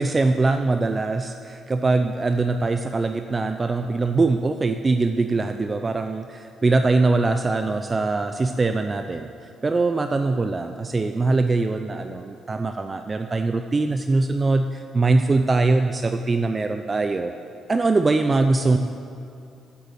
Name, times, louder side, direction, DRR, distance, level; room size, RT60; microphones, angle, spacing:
voice 1, 0.0-9.3 9.6-17.3 17.7-18.8, right 3 dB, 30° right, 7 dB, 0.4 m, -22 dB
8.3 x 8.1 x 8.0 m, 2.5 s
cardioid pair, 90°, 0 cm